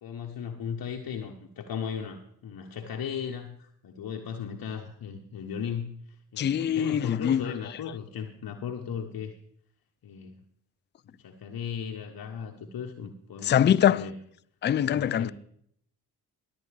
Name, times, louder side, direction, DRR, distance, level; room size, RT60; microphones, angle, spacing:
voice 1, 0.0-9.4 10.0-10.4 11.2-14.2 14.8-15.3, left 7 dB, 50° left, 1.1 m, -36 dB
voice 2, 6.4-7.5 13.4-14.1 14.6-15.3, left 9 dB, 25° left, 0.4 m, -23 dB
21.5 x 7.9 x 3.4 m
hypercardioid pair, 45°, 47 cm